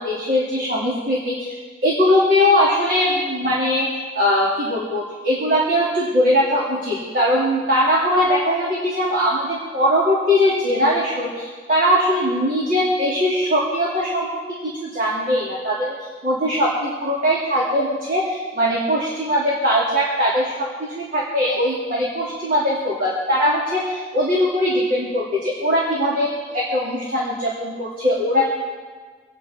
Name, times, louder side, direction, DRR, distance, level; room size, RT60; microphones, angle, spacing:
voice 1, 0.0-1.5 1.8-3.9 4.1-14.3 14.6-15.9 16.2-26.3 26.5-28.4, equal, 50° right, -6 dB, 3.2 m, -20 dB
26.5 x 9.3 x 4.5 m, 1.5 s
head